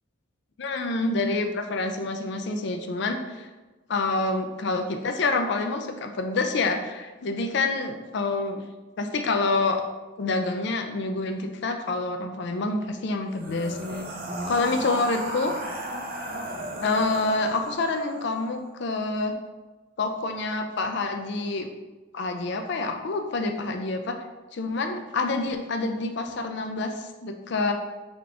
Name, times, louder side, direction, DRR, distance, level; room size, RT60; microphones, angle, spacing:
voice 1, 0.6-3.5 3.9-8.6 9.0-9.8 10.2-14.0 14.5-15.5 16.8-19.4 20.0-21.7 22.1-24.2 24.5-27.7, left 3 dB, 55° left, 6 dB, 0.4 m, -27 dB
sound 1, 13.3-18.6, right 1 dB, 45° right, 0.5 m, -35 dB
5.1 x 2.5 x 3.4 m, 1.2 s
head